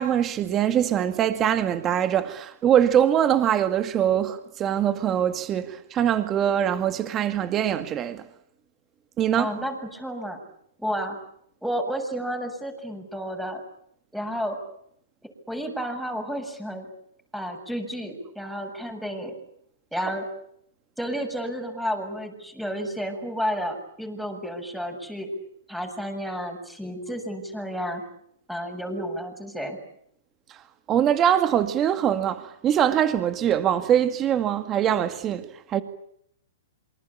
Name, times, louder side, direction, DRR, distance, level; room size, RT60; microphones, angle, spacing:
voice 1, 0.0-8.2 9.2-9.5 30.9-35.8, right 10 dB, 25° right, 2.1 m, -23 dB
voice 2, 9.4-10.4 10.8-11.2 11.6-13.6 14.1-14.6 15.5-16.9 17.3-19.3 19.9-20.3 21.0-25.3 25.7-28.0 28.5-29.8, equal, ahead, 7.4 m, -31 dB
27.5 x 24.5 x 8.7 m
hypercardioid pair, 135°, 0 cm